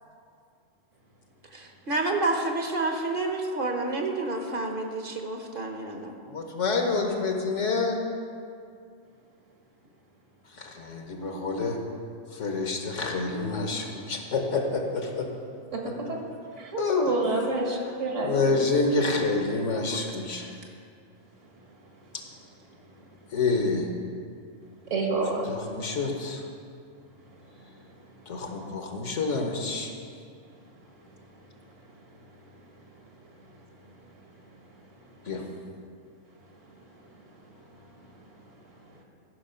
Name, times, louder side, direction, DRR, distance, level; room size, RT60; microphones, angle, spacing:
voice 1, 1.5-6.1, right 2 dB, 45° right, 3 dB, 1.0 m, -29 dB
voice 2, 6.3-8.0 10.5-11.8 12.3-15.3 15.8-16.1 16.8-17.2 17.7-18.0 18.2-20.5 22.1-22.2 23.3-23.9 25.4-26.4 28.3-29.9 35.2-35.4, left 3 dB, 70° left, 2 dB, 1.4 m, -28 dB
voice 3, 16.6-18.7 24.9-25.4, right 3 dB, 70° right, 0 dB, 1.9 m, -28 dB
13.5 x 5.7 x 5.7 m, 2.3 s
omnidirectional pair, 1.3 m